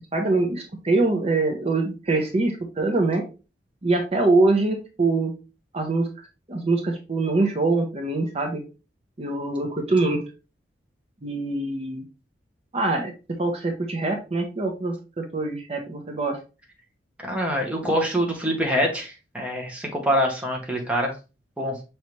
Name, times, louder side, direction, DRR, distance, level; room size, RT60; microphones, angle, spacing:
voice 1, 0.1-3.3 3.8-5.3 5.7-8.6 9.2-10.2 11.2-12.0 12.7-13.1 13.4-16.4, right 2 dB, 35° right, 3 dB, 0.8 m, -24 dB
voice 2, 17.2-21.1 21.6-21.7, equal, 5° right, 0 dB, 1.0 m, -25 dB
5.4 x 3.2 x 3.0 m, 0.30 s
head